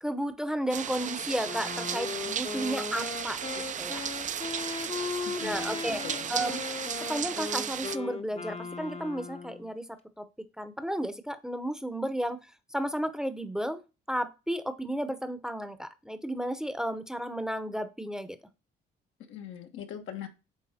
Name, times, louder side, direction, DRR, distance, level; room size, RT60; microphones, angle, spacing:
voice 1, 0.0-4.0 5.4-6.0 6.3-6.6 7.0-9.9 10.2-10.3 10.6-12.4 12.7-13.8 14.1-18.4, equal, 5° right, 0.7 m, -33 dB
sound 1, 0.7-8.0, right 8 dB, 40° right, 0.4 m, -35 dB
Wind instrument woodwind instrument, 1.4-9.7, left 4 dB, 30° left, 0.7 m, -38 dB
voice 2, 5.2-6.3 19.3-20.3, left 9 dB, 85° left, 1.2 m, -42 dB
8.6 x 3.3 x 4.2 m
cardioid pair, 90°, 20 cm